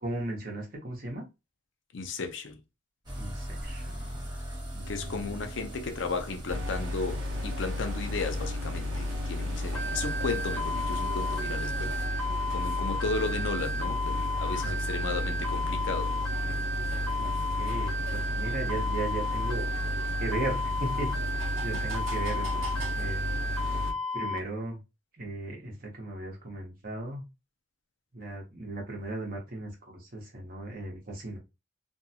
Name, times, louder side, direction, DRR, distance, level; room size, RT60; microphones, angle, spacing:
voice 1, 0.0-1.2 3.2-4.3 4.7-5.4 14.5-14.7 17.1-17.3 17.6-19.7 20.2-21.1 21.6-23.2 24.1-24.8 25.2-27.2 28.1-31.4, right 2 dB, 50° right, 1.0 m, -37 dB
voice 2, 1.9-2.6 4.9-12.0 12.5-16.6 21.7-21.8, left 4 dB, 65° left, 0.5 m, -35 dB
sound 1, 3.1-12.1, equal, 20° right, 0.9 m, -41 dB
sound 2, 6.5-23.9, left 1 dB, 85° right, 0.7 m, -33 dB
sound 3, 9.7-24.4, left 1 dB, 5° left, 0.5 m, -34 dB
2.6 x 2.3 x 2.7 m
head